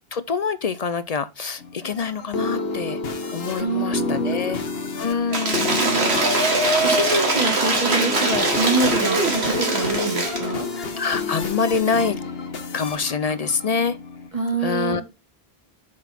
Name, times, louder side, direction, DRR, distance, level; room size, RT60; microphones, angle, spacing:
voice 1, 0.1-3.0 3.3-4.6 5.0-5.9 10.8-12.2 12.7-14.0 14.6-15.0, left 5 dB, 50° left, 0.5 m, -25 dB
sound 1, 1.6-14.3, left 4 dB, 70° left, 1.4 m, -30 dB
voice 2, 3.5-4.4 5.6-6.2 6.8-10.7 14.3-15.0, right 3 dB, 30° right, 1.7 m, -26 dB
Cheering / Applause / Crowd, 5.3-10.5, right 2 dB, 85° right, 2.2 m, -22 dB
7.5 x 6.2 x 4.1 m
omnidirectional pair, 1.1 m